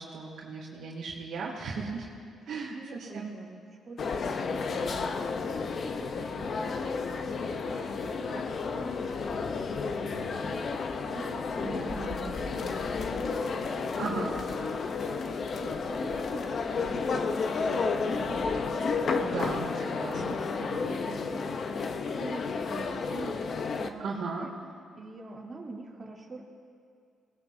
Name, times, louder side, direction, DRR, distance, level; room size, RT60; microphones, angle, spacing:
voice 1, 0.0-2.1 2.5-3.3 14.0-14.3 19.2-20.4 24.0-24.5, right 4 dB, 65° right, -5 dB, 2.3 m, -36 dB
voice 2, 2.7-5.4 5.8-7.3 7.6-7.9 8.2-9.1 10.0-14.3 15.5-18.8 19.1-19.8 20.1-21.6 21.8-24.5 24.9-26.4, right 3 dB, 35° right, -3 dB, 3.3 m, -44 dB
sound 1, 4.0-23.9, left 4 dB, 50° left, 0.8 m, -32 dB
22.5 x 18.5 x 2.7 m, 2.3 s
cardioid pair, 90°, 0 cm